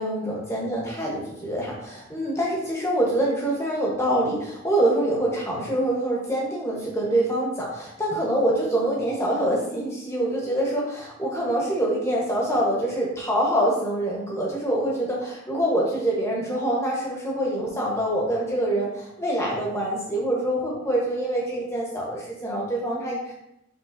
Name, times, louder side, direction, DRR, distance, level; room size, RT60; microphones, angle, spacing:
voice 1, 0.0-23.3, right 1 dB, 15° left, -4 dB, 1.0 m, -25 dB
5.4 x 3.6 x 2.6 m, 0.81 s
head